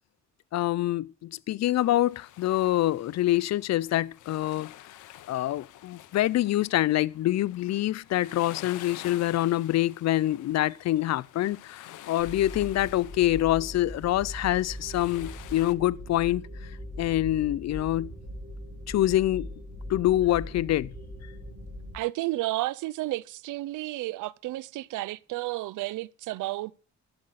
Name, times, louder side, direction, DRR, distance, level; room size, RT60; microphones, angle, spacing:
voice 1, 0.5-4.7 5.3-16.5 17.0-18.1 18.9-19.5 19.9-20.9, left 14 dB, 60° left, 0.5 m, -26 dB
sound 1, 1.7-15.7, left 13 dB, 80° left, 0.8 m, -49 dB
sound 2, 12.2-21.9, left 1 dB, 30° right, 4.9 m, -40 dB
voice 2, 21.9-26.7, right 18 dB, 85° right, 0.5 m, -32 dB
11.5 x 7.8 x 4.1 m
cardioid pair, 90°, 30 cm